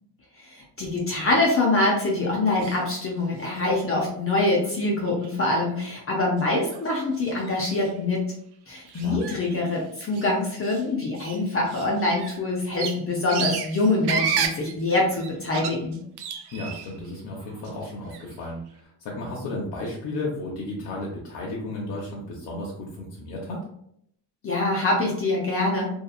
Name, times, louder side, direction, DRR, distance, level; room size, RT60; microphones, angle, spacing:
voice 1, 0.4-8.2 8.7-16.0 24.4-25.9, left 2 dB, 30° left, -2 dB, 0.6 m, -24 dB
sound 1, 2.6-3.1 3.4-4.0 4.6-4.7 5.1-5.3 5.8-5.9 6.4-6.5 6.7-8.0 8.8-10.3 10.6-10.8 11.1-17.1 17.4-18.3, right 7 dB, 65° right, 0.5 m, -33 dB
voice 2, 16.5-23.6, left 2 dB, 70° left, -3 dB, 0.8 m, -34 dB
2.8 x 2.3 x 2.3 m, 0.70 s
cardioid pair, 135°, 43 cm